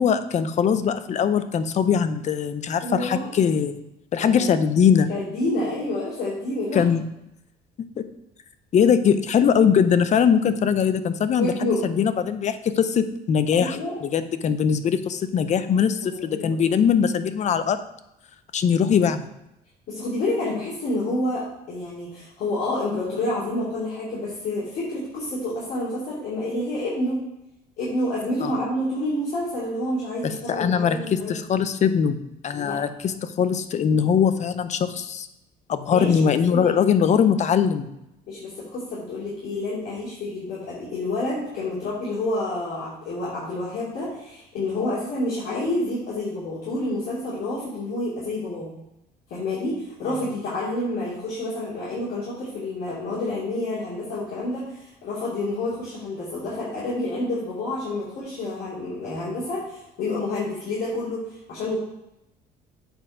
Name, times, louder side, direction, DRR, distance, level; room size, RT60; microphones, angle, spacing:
voice 1, 0.0-3.8 4.1-5.1 6.7-7.0 8.0-8.1 8.7-13.8 14.0-17.8 18.5-19.3 28.4-28.5 30.2-35.3 35.7-37.9, left 7 dB, 45° left, 11 dB, 0.6 m, -21 dB
voice 2, 2.8-3.3 4.2-4.5 5.1-6.8 11.3-11.8 13.5-14.0 16.0-16.6 19.9-27.2 27.8-31.3 32.5-32.8 35.9-36.6 38.3-48.7 49.3-61.8, left 1 dB, 70° left, -8 dB, 2.6 m, -28 dB
7.9 x 4.4 x 4.9 m, 0.87 s
cardioid pair, 110°, 17 cm